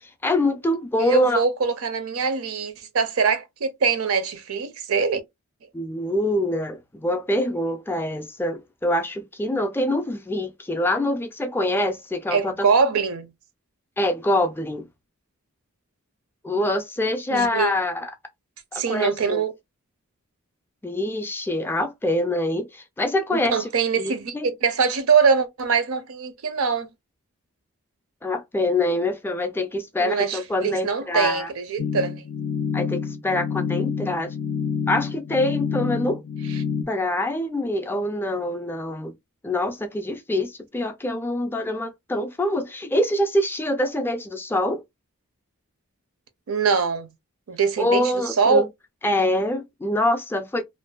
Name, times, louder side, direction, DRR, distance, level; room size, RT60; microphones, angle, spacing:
voice 1, 0.2-1.4 5.7-12.7 14.0-14.9 16.4-18.1 18.7-19.4 20.8-23.7 24.0-24.5 28.2-31.5 32.7-34.3 34.9-36.2 36.9-39.1 39.4-44.8 47.8-48.7 49.0-50.6, left 1 dB, 10° left, 0.3 m, -25 dB
voice 2, 1.0-5.2 12.3-13.3 17.3-17.7 18.7-19.5 23.3-26.9 30.0-32.2 46.5-47.1 47.5-48.6, right 5 dB, 70° right, 0.5 m, -23 dB
sound 1, 31.8-36.8, left 6 dB, 80° left, 0.4 m, -28 dB
2.5 x 2.2 x 2.2 m
head